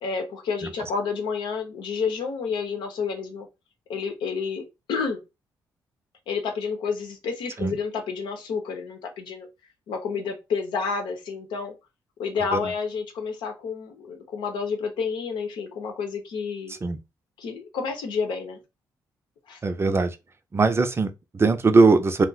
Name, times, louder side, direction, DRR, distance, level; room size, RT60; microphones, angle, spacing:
voice 1, 0.0-3.5 3.9-5.2 6.3-9.5 9.9-11.7 12.2-16.7 17.4-18.6 19.5-19.6, left 5 dB, 85° left, 0.8 m, -30 dB
voice 2, 19.6-20.2 20.5-22.2, right 3 dB, 35° right, 0.5 m, -20 dB
2.4 x 2.1 x 3.9 m
cardioid pair, 65°, 8 cm